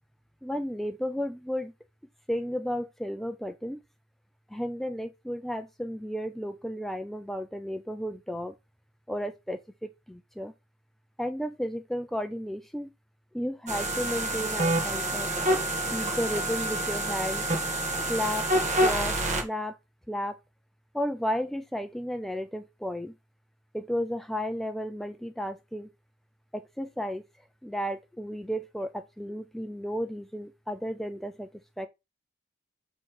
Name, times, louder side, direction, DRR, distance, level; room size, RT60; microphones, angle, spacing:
voice 1, 0.4-1.7 2.3-3.8 4.5-8.5 9.1-10.5 11.2-12.9 13.3-15.3 15.9-17.5 18.1-18.5 18.8-19.8 20.1-20.4 20.9-23.1 23.7-25.9 26.5-27.2 27.6-31.5 31.8-31.9, equal, ahead, 0.3 m, -33 dB
sound 1, 13.7-19.4, right 1 dB, 35° right, 1.4 m, -27 dB
7.0 x 3.2 x 4.7 m
head